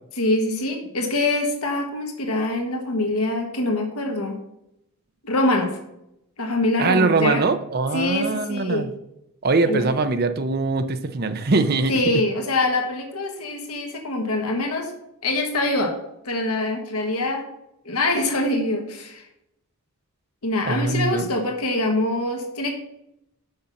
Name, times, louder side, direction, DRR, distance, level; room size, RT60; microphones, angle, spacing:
voice 1, 0.2-4.4 5.2-5.8 6.4-7.4 7.9-8.9 9.6-9.9 11.9-14.9 15.2-15.9 16.2-17.4 17.8-19.2 20.4-22.7, left 2 dB, 80° left, 3 dB, 1.5 m, -24 dB
voice 2, 6.8-8.9 9.4-12.0 20.7-21.2, right 3 dB, 45° right, 9 dB, 0.6 m, -22 dB
6.7 x 5.5 x 5.8 m, 0.82 s
head